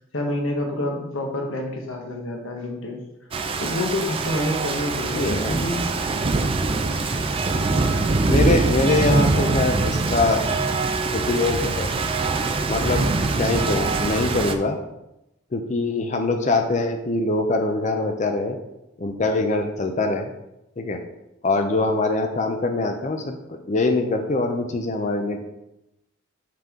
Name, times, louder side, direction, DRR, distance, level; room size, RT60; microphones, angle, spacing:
voice 1, 0.1-3.0 3.6-5.9, left 1 dB, 75° left, 2 dB, 1.2 m, -27 dB
Rain, 3.3-14.6, right 3 dB, 25° right, 0.4 m, -23 dB
voice 2, 5.1-5.6 8.3-10.4 11.1-11.9 12.7-13.1 13.4-14.8 15.5-18.6 19.0-20.3 20.8-21.0 21.4-25.4, left 2 dB, 35° left, 5 dB, 0.5 m, -23 dB
5.7 x 5.3 x 3.7 m, 0.90 s
head